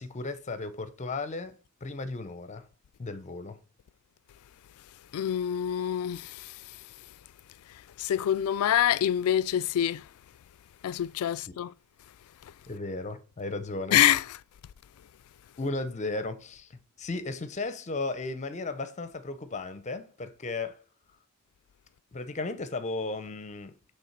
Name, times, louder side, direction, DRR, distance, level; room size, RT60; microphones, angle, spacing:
voice 1, 0.0-1.5 1.8-2.7 3.0-3.6 11.3-11.5 12.7-14.0 15.6-20.8 22.1-23.7, left 3 dB, 35° left, 0.6 m, -35 dB
voice 2, 5.1-6.5 8.0-10.0 10.8-11.7 13.9-14.2, left 11 dB, 75° left, 0.3 m, -26 dB
8.3 x 3.4 x 4.5 m
head